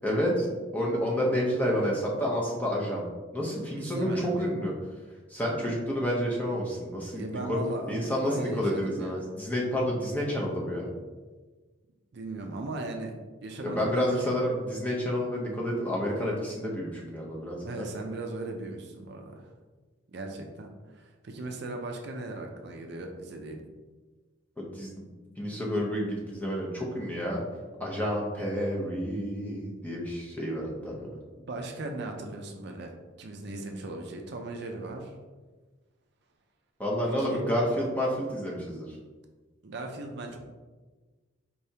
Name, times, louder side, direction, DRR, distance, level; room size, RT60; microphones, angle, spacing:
voice 1, 0.0-0.5 0.7-3.0 3.3-4.7 5.3-7.6 7.9-10.9 13.6-17.9 24.6-25.0 25.4-27.4 27.8-31.1 36.8-38.9, equal, 10° left, -3 dB, 0.7 m, -29 dB
voice 2, 1.3-2.0 3.8-4.5 7.1-8.0 8.3-9.3 12.1-13.1 13.4-14.6 17.6-19.5 20.1-23.6 31.5-32.9 33.2-35.1 37.2-37.4 39.6-40.4, right 2 dB, 55° right, 3 dB, 0.4 m, -38 dB
4.5 x 3.4 x 2.8 m, 1.3 s
head